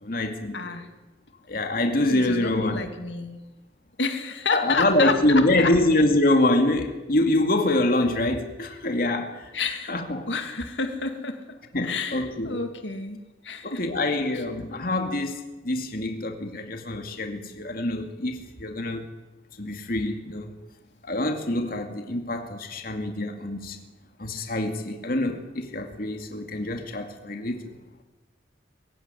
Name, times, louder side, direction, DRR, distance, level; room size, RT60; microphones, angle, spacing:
voice 1, 0.0-0.8 1.5-2.8 4.5-9.5 9.9-10.3 11.7-12.6 13.6-15.4 15.6-19.1 19.6-20.5 21.0-23.8 24.2-27.8, left 1 dB, 55° left, 2.3 m, -25 dB
voice 2, 0.5-0.9 2.1-3.4 4.0-5.7 9.5-10.0 10.3-11.4 11.8-13.2 13.4-13.8 14.7-14.9, left 4 dB, 85° left, 2.5 m, -29 dB
23.0 x 16.0 x 9.7 m
head